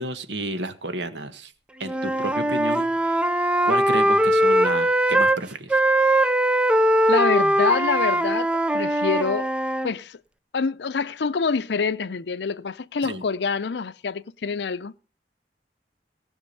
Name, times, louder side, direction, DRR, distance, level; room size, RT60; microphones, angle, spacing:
voice 1, 0.0-1.5 1.8-3.2 3.6-5.8 13.0-13.2, right 1 dB, 75° right, 1.5 m, -31 dB
Wind instrument woodwind instrument, 1.8-5.4 5.7-9.9, right 1 dB, 5° right, 0.5 m, -21 dB
voice 2, 7.1-9.5 9.8-10.2 10.5-15.0, left 5 dB, 70° left, 0.6 m, -26 dB
18.5 x 6.2 x 6.8 m
head